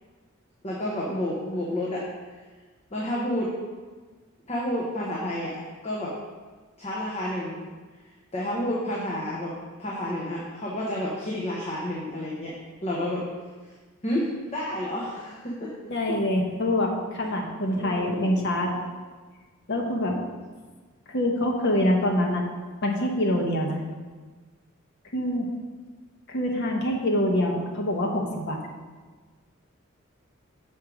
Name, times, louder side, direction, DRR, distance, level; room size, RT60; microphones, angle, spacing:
voice 1, 0.6-2.0 2.9-3.5 4.5-6.1 6.8-7.6 8.3-9.5 9.8-12.5 12.8-13.2 14.0-15.7 16.1-16.2 17.6-18.2, left 1 dB, 30° left, -4 dB, 0.9 m, -30 dB
voice 2, 15.9-18.7 19.7-20.2 21.1-22.4 22.8-23.8 25.1-25.5 26.3-28.6, left 1 dB, 55° left, 1 dB, 1.0 m, -25 dB
6.5 x 4.5 x 4.9 m, 1.4 s
head